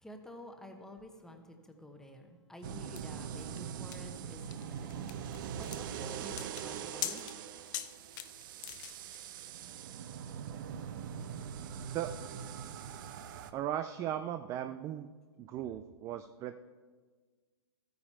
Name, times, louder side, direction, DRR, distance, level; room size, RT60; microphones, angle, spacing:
voice 1, 0.0-7.2, left 1 dB, 5° left, 4 dB, 1.1 m, -51 dB
sound 1, 2.6-13.5, right 8 dB, 50° right, 0.7 m, -42 dB
sound 2, 3.0-9.2, left 13 dB, 45° left, 0.6 m, -43 dB
voice 2, 13.5-15.1 15.4-16.7, right 11 dB, 20° right, 10 dB, 0.3 m, -37 dB
13.5 x 9.2 x 4.3 m, 1.5 s
hypercardioid pair, 130°, 14 cm